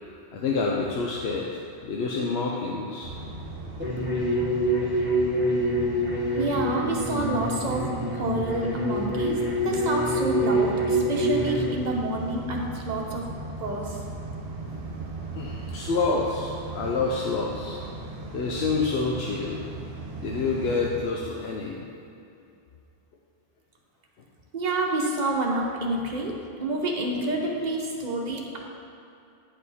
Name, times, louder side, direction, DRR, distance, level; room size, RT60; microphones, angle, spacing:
voice 1, 0.3-3.1 15.4-17.8 18.3-19.6 20.2-21.9, left 4 dB, 75° left, -2 dB, 0.9 m, -28 dB
sound 1, 3.0-21.0, right 2 dB, 60° right, 1.2 m, -38 dB
sound 2, 3.8-11.7, equal, 10° right, 1.1 m, -26 dB
voice 2, 6.4-7.9 8.1-13.2 13.6-14.0 24.5-26.3 26.6-28.6, right 2 dB, 45° right, 0 dB, 1.0 m, -28 dB
9.5 x 5.2 x 4.1 m, 2.6 s
omnidirectional pair, 1.1 m